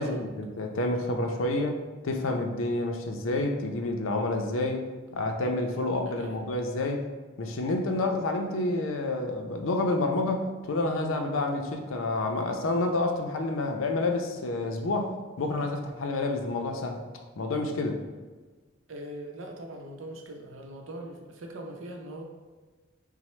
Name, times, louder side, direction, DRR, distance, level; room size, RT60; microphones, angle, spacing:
voice 1, 0.0-1.8 2.0-7.0 7.4-17.0 17.4-18.0, left 2 dB, 80° left, 4 dB, 0.5 m, -29 dB
voice 2, 18.9-22.2, right 1 dB, 80° right, 2 dB, 0.6 m, -41 dB
6.0 x 2.1 x 3.2 m, 1.3 s
head